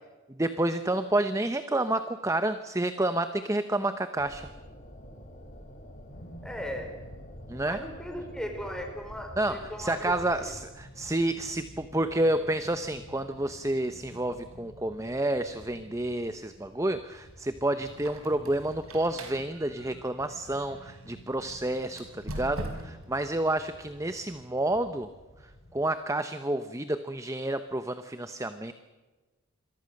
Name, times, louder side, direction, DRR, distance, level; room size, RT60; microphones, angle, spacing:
voice 1, 0.3-4.5 7.5-7.8 9.4-25.1 25.4-28.7, right 1 dB, 15° right, 10 dB, 0.9 m, -29 dB
sound 1, 4.2-10.6, equal, 35° left, 3.6 m, -47 dB
sound 2, 6.1-25.9, equal, 55° left, 3.4 m, -52 dB
voice 2, 6.4-6.9 7.6-10.5, equal, 5° left, 3 dB, 5.1 m, -38 dB
Squeak, 17.9-21.1 21.9-23.2, right 1 dB, 80° right, 5.2 m, -41 dB
27.5 x 22.5 x 6.6 m, 1.3 s
head